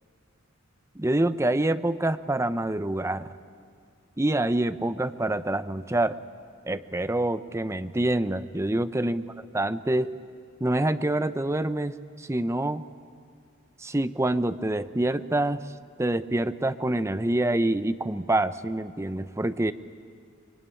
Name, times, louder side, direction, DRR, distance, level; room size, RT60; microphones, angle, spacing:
voice 1, 1.0-3.3 4.2-6.2 6.6-9.2 9.5-10.1 10.6-12.8 13.8-15.6 16.0-19.7, right 1 dB, 15° right, 13 dB, 0.6 m, -26 dB
24.0 x 23.5 x 10.0 m, 2.3 s
head